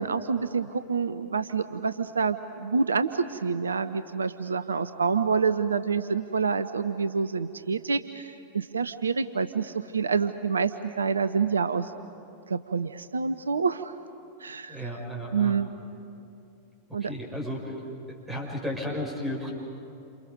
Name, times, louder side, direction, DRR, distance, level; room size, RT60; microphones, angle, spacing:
voice 1, 0.0-11.9 12.5-13.9 14.4-14.8 15.3-15.7 16.9-17.1, right 5 dB, 75° right, 12 dB, 0.6 m, -27 dB
voice 2, 14.7-15.6 17.0-17.7 18.1-19.5, left 1 dB, 10° right, -2 dB, 6.4 m, -34 dB
29.0 x 28.0 x 5.4 m, 2.7 s
figure-of-eight pair, 90°, 0 cm